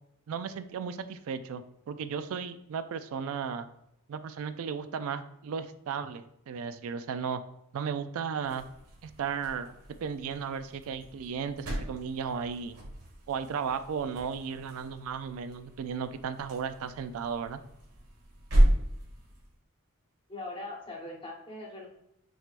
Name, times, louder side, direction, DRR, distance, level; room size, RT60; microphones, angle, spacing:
voice 1, 0.3-3.7 4.1-7.4 7.7-8.6 9.0-9.7 10.0-12.8 13.3-17.6, right 6 dB, 65° right, 10 dB, 0.3 m, -35 dB
sound 1, 8.4-19.5, right 1 dB, 80° right, 1.5 m, -33 dB
voice 2, 20.3-21.9, left 2 dB, 25° left, -2 dB, 1.0 m, -41 dB
6.1 x 3.4 x 2.5 m, 0.81 s
head